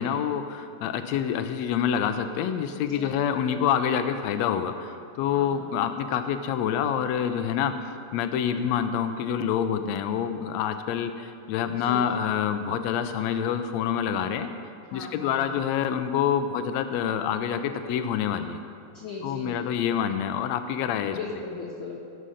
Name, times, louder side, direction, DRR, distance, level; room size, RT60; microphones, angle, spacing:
voice 1, 0.0-7.7 8.1-14.5 14.9-18.6 19.2-21.2, left 8 dB, 85° left, 9 dB, 1.5 m, -27 dB
voice 2, 5.3-5.7 11.9-12.1 14.9-15.4 18.9-19.5 21.1-22.0, left 4 dB, 65° left, -2 dB, 1.3 m, -37 dB
18.5 x 6.4 x 5.5 m, 2.4 s
omnidirectional pair, 3.7 m